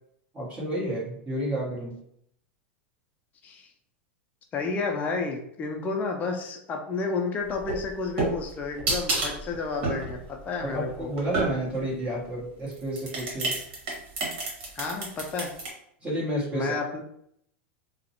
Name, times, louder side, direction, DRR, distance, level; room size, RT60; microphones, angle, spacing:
voice 1, 0.3-2.0 10.6-13.6 16.0-16.7, right 1 dB, 20° right, -7 dB, 1.0 m, -31 dB
voice 2, 4.5-10.2 10.5-11.1 14.7-15.5 16.5-17.0, left 4 dB, 25° left, 2 dB, 0.4 m, -31 dB
sound 1, 7.5-11.9 12.7-15.7, right 2 dB, 60° right, 1.1 m, -30 dB
2.4 x 2.0 x 2.8 m, 0.71 s
hypercardioid pair, 115°, 6 cm